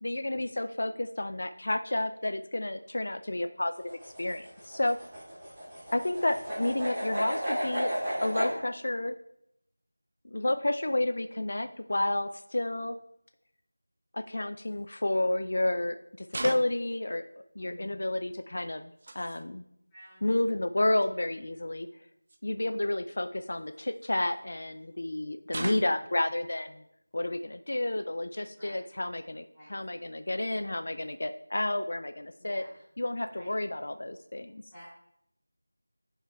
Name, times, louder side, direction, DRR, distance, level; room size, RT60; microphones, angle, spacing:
voice 1, 0.0-3.7 4.0-5.0 5.9-9.1 10.2-13.0 14.1-17.2 17.6-19.6 20.2-21.9 22.4-26.8 27.1-32.6 33.0-34.6, left 1 dB, 50° left, 8 dB, 0.4 m, -31 dB
sound 1, 3.8-8.5, equal, 10° right, 2.2 m, -33 dB
sound 2, 14.6-14.8 16.3-16.9 18.7-19.5 20.6-20.7 20.9-21.1 22.3-22.4 23.4-24.4 25.5-26.1, right 2 dB, 35° right, 0.5 m, -39 dB
voice 2, 17.5-18.0 19.9-20.4 28.6-28.8 29.5-29.7 32.4-32.7 33.3-33.5 34.7-34.9, equal, 5° left, -15 dB, 2.9 m, -50 dB
11.0 x 5.5 x 2.4 m, 0.78 s
figure-of-eight pair, 175°, 0 cm